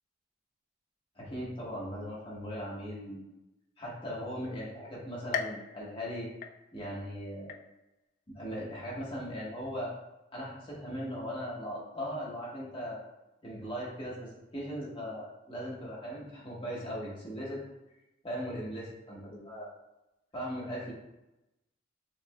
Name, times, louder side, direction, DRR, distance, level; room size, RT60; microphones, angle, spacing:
voice 1, 1.1-3.2 3.8-6.3 6.7-7.5 8.3-9.9 10.3-13.0 13.4-17.6 18.2-19.7 20.3-20.9, equal, 30° left, -5 dB, 1.4 m, -38 dB
sound 1, 5.3-7.0 7.5-8.1 8.6-8.7 9.6-9.7, left 6 dB, 45° left, 0.3 m, -39 dB
6.6 x 3.3 x 2.3 m, 0.94 s
head